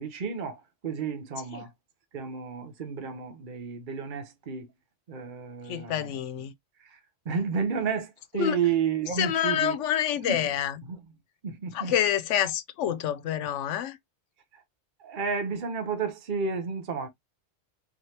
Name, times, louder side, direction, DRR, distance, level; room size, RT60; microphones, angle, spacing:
voice 1, 0.0-1.7 2.1-4.7 5.1-6.1 6.9-7.0 7.3-9.8 10.3-10.4 10.9-11.0 11.4-11.9 15.0-17.1, right 6 dB, 45° right, 1.0 m, -31 dB
voice 2, 5.6-6.5 7.3-7.4 8.3-8.6 9.1-10.8 11.7-14.0, left 10 dB, 90° left, 1.0 m, -27 dB
4.3 x 3.2 x 2.8 m
omnidirectional pair, 1.2 m